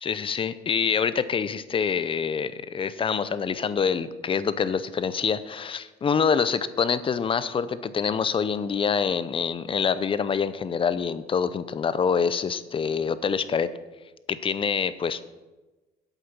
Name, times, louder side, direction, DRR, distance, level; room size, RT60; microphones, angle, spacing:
voice 1, 0.0-13.7 14.3-15.4, left 6 dB, 30° left, 14 dB, 0.6 m, -26 dB
8.1 x 7.9 x 6.0 m, 1.1 s
cardioid pair, 110°, 17 cm